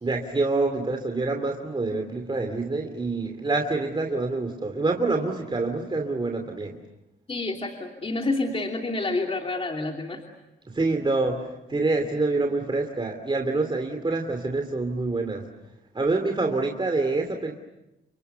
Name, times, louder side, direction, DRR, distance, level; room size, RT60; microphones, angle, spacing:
voice 1, 0.0-6.8 10.7-15.5 15.9-17.5, right 3 dB, 25° right, 4 dB, 2.8 m, -26 dB
voice 2, 7.3-10.2, left 2 dB, 30° left, 2 dB, 2.9 m, -28 dB
30.0 x 27.0 x 6.9 m, 0.94 s
cardioid pair, 80°, 19 cm